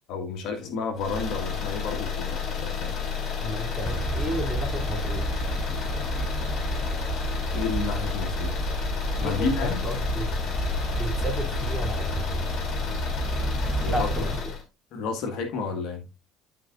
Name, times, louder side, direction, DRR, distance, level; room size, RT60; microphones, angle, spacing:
voice 1, 0.1-2.9 7.5-8.6 9.2-9.8 13.8-14.1 14.9-16.0, left 4 dB, 65° left, 1.8 m, -31 dB
sound 1, 1.0-14.6, left 7 dB, 50° left, 4.3 m, -30 dB
voice 2, 3.4-5.4 9.2-10.4 11.0-12.6 13.9-14.5, equal, 5° left, 2.9 m, -33 dB
sound 2, 3.8-14.4, right 4 dB, 20° right, 0.4 m, -31 dB
13.0 x 5.0 x 2.5 m
hypercardioid pair, 70°, 0 cm